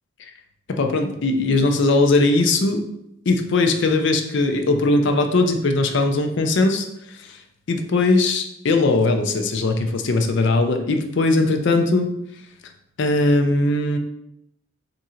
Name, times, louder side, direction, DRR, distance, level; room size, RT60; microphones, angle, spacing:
voice 1, 0.7-2.8 3.3-7.4 7.7-12.1 13.0-14.0, left 2 dB, 55° left, 6 dB, 0.4 m, -20 dB
3.6 x 2.5 x 4.3 m, 0.79 s
head